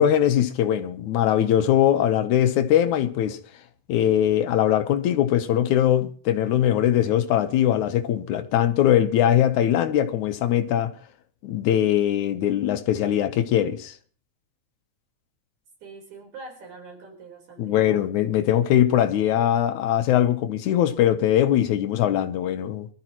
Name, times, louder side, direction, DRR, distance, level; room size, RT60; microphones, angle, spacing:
voice 1, 0.0-3.4 3.9-10.9 11.4-13.9 17.6-22.9, left 11 dB, 85° left, 2.4 m, -21 dB
voice 2, 15.8-18.0, right 3 dB, 85° right, 5.6 m, -43 dB
24.0 x 13.0 x 3.0 m
omnidirectional pair, 3.4 m